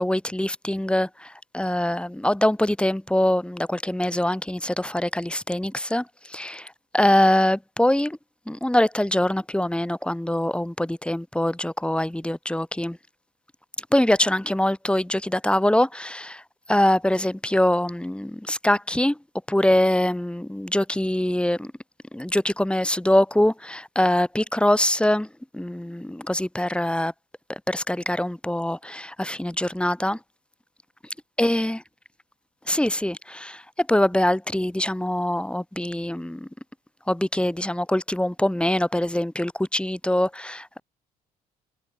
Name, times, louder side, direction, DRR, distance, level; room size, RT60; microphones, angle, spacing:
voice 1, 0.0-8.2 8.5-13.0 13.9-16.4 16.7-19.2 19.5-21.7 22.1-25.3 25.5-27.1 27.5-30.2 31.4-31.8 32.7-36.5 37.1-40.8, left 1 dB, 5° left, 4.1 m, -23 dB
figure-of-eight pair, 50°, 20 cm